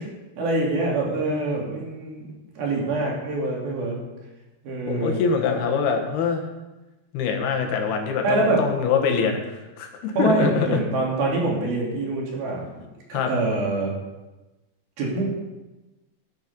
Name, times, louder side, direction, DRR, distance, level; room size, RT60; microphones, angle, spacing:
voice 1, 0.4-2.3 2.6-4.0 4.6-5.2 8.2-8.6 10.2-12.8 13.1-13.9 15.0-15.3, right 2 dB, 75° right, -2 dB, 4.5 m, -25 dB
voice 2, 1.2-1.6 4.8-6.5 7.1-10.8 13.1-13.3, left 6 dB, 90° left, 3 dB, 3.5 m, -24 dB
14.0 x 8.4 x 5.4 m, 1.1 s
omnidirectional pair, 4.4 m